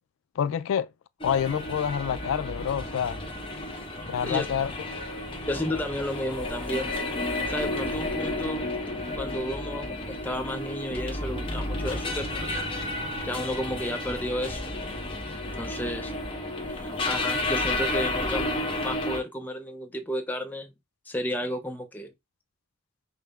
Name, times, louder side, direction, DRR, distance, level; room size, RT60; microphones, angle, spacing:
voice 1, 0.4-0.9 1.2-3.2 4.1-4.7, left 8 dB, 80° left, 0.3 m, -27 dB
sound 1, 1.2-19.2, left 2 dB, 25° left, 1.0 m, -32 dB
voice 2, 5.5-7.0 7.5-8.7 9.2-12.7 13.2-14.7 15.6-16.1 16.7-20.7 21.1-22.1, equal, 10° left, 0.5 m, -32 dB
5.7 x 2.0 x 3.4 m
head